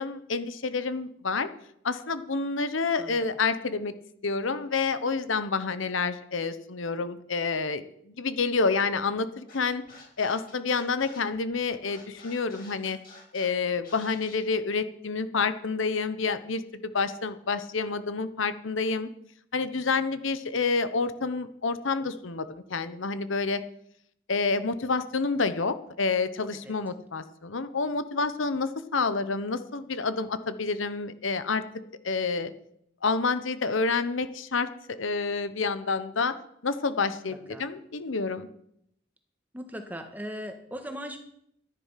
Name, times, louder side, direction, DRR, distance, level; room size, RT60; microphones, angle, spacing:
voice 1, 0.0-1.5 1.8-3.9 4.2-9.8 10.2-13.0 13.3-19.1 19.5-23.6 24.3-31.6 32.0-32.5 33.0-34.7 35.0-36.3 36.6-38.5, left 4 dB, 70° left, 12 dB, 0.9 m, -28 dB
Scratching (performance technique), 9.5-14.4, left 3 dB, 45° left, 5.8 m, -50 dB
voice 2, 37.3-37.6 39.5-41.2, equal, 10° right, 5 dB, 1.5 m, -39 dB
14.0 x 10.5 x 5.8 m, 0.72 s
head